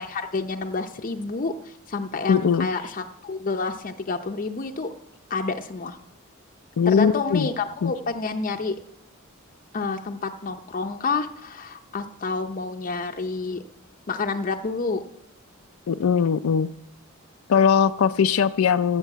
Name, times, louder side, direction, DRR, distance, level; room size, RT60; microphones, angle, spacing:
voice 1, 0.0-4.9 5.3-6.0 6.9-8.8 9.7-13.6 14.1-15.0, left 4 dB, 40° left, 4 dB, 0.6 m, -29 dB
voice 2, 2.3-2.7 6.8-7.5 7.8-7.9 15.9-16.7 17.5-19.0, left 7 dB, 85° left, 9 dB, 0.4 m, -20 dB
13.0 x 7.3 x 7.9 m, 0.81 s
head